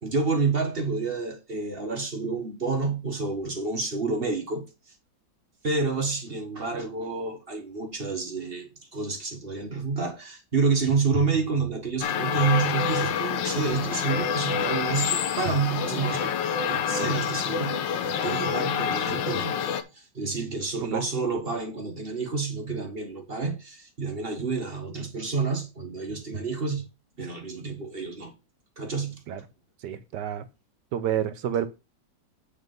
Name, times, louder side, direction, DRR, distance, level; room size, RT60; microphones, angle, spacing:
voice 1, 0.0-4.7 5.6-16.4 16.7-26.9 27.2-28.3 28.8-29.2, right 4 dB, 35° right, 1.4 m, -29 dB
sound 1, 12.0-19.8, left 7 dB, 80° left, 1.5 m, -27 dB
voice 2, 29.8-30.4 30.9-31.7, right 10 dB, 70° right, 1.5 m, -29 dB
8.7 x 4.4 x 5.3 m
omnidirectional pair, 2.0 m